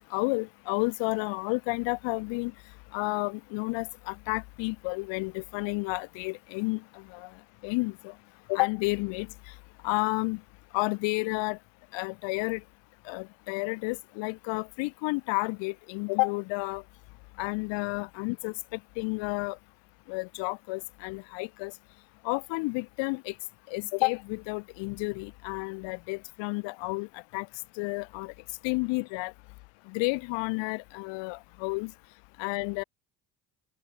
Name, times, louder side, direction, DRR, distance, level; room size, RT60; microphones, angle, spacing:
voice 1, 0.1-2.5 2.9-6.8 7.1-7.3 7.6-8.1 8.5-9.3 9.8-10.4 10.7-11.6 11.9-12.6 13.1-16.8 17.4-18.5 19.0-19.6 20.1-21.7 22.2-23.3 23.7-27.5 27.8-28.3 28.6-29.3 29.9-31.9 32.4-32.8, left 28 dB, 65° left, 0.5 m, -31 dB
hypercardioid pair, 65°, 47 cm